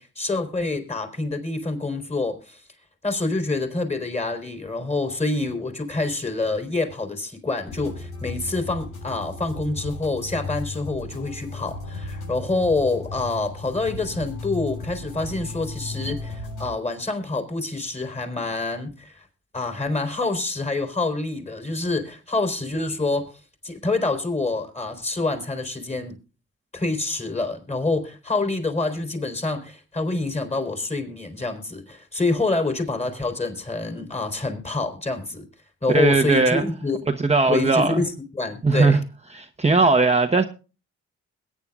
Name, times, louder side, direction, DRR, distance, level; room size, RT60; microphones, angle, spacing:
voice 1, 0.0-2.6 3.0-19.3 19.5-26.2 26.7-35.4 35.8-37.0 37.5-39.0, left 3 dB, 20° left, 3.9 m, -27 dB
sound 1, 7.7-16.7, left 3 dB, 85° left, 7.5 m, -35 dB
voice 2, 35.9-36.6 37.2-38.0 38.6-39.0 39.3-40.4, right 3 dB, 20° right, 1.0 m, -18 dB
21.5 x 9.7 x 2.4 m
cardioid pair, 80°, 30 cm